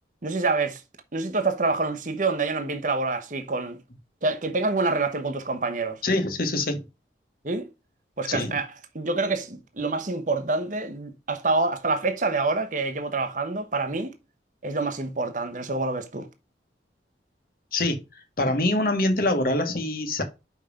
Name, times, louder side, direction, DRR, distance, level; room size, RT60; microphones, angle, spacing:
voice 1, 0.2-0.8 1.1-3.8 4.2-6.0 7.4-7.7 8.2-8.7 8.9-14.1 14.6-16.3, right 3 dB, 45° right, 1.1 m, -26 dB
voice 2, 6.0-6.8 8.2-8.6 17.7-20.2, left 2 dB, 55° left, 1.5 m, -25 dB
5.7 x 5.3 x 4.9 m
head